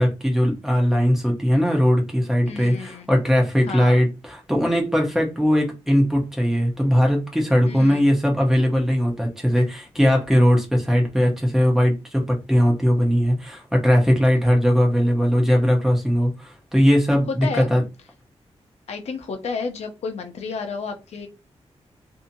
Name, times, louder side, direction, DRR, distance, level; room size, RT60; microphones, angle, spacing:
voice 1, 0.0-17.8, equal, 5° right, 0.8 m, -19 dB
voice 2, 2.5-3.1 3.6-4.0 7.7-8.1 17.3-17.7 18.9-21.3, left 4 dB, 75° left, 0.7 m, -31 dB
2.7 x 2.7 x 2.6 m
wide cardioid pair, 155°, 11 cm